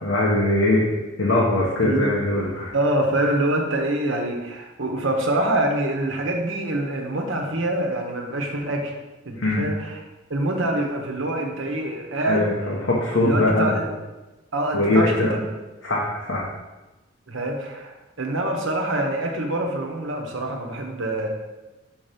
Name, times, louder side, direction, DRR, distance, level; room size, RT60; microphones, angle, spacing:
voice 1, 0.0-0.8 1.2-2.7 9.4-9.7 12.3-13.8 14.7-15.3 15.8-16.5, left 2 dB, 65° left, -4 dB, 1.1 m, -21 dB
voice 2, 2.7-8.9 9.2-10.0 10.3-12.5 13.2-13.9 14.5-15.4 17.3-21.3, right 1 dB, 70° right, 2 dB, 1.2 m, -25 dB
6.0 x 5.1 x 5.2 m, 1.1 s
head